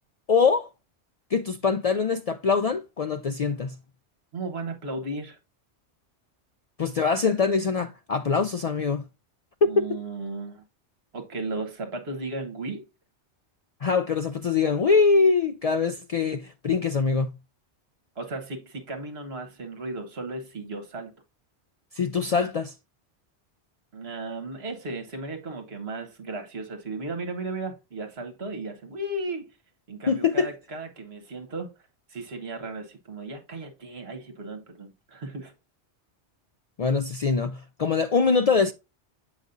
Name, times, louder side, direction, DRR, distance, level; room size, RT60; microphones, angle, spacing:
voice 1, 0.3-0.7 1.3-3.8 6.8-9.0 9.8-10.0 13.8-17.4 22.0-22.7 30.1-30.5 36.8-38.7, left 5 dB, 70° left, 0.3 m, -23 dB
voice 2, 4.3-5.4 9.6-10.6 11.1-12.8 18.2-21.1 23.9-29.5 29.9-31.7 32.1-35.5, right 2 dB, 65° right, 1.4 m, -35 dB
8.2 x 5.0 x 2.5 m
omnidirectional pair, 1.2 m